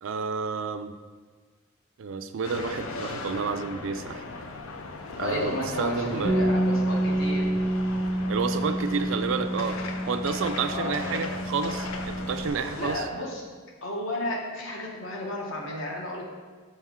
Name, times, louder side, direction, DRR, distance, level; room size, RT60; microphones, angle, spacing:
voice 1, 0.0-0.9 2.0-4.2 5.2-6.4 8.3-9.8 10.1-13.1, right 5 dB, 70° right, 9 dB, 0.4 m, -30 dB
sound 1, 2.4-13.0, left 3 dB, 85° left, 0.5 m, -38 dB
voice 2, 5.1-7.5 10.6-11.4 12.8-13.4 13.8-16.2, left 1 dB, 70° left, 0 dB, 1.0 m, -33 dB
Bass guitar, 6.2-12.5, right 1 dB, 25° left, 0.8 m, -28 dB
6.3 x 4.3 x 3.6 m, 1.5 s
head